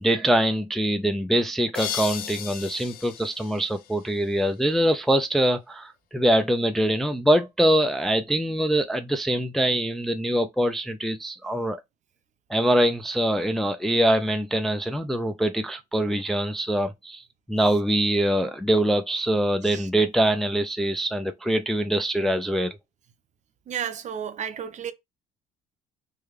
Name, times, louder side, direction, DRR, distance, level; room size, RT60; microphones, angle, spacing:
voice 1, 0.0-11.8 12.5-17.2 17.5-22.7, right 1 dB, ahead, 0.4 m, -23 dB
sound 1, 1.7-4.5, left 10 dB, 60° left, 0.5 m, -35 dB
voice 2, 23.7-24.9, right 8 dB, 45° right, 0.6 m, -32 dB
3.2 x 2.2 x 3.5 m
cardioid pair, 110°, 17 cm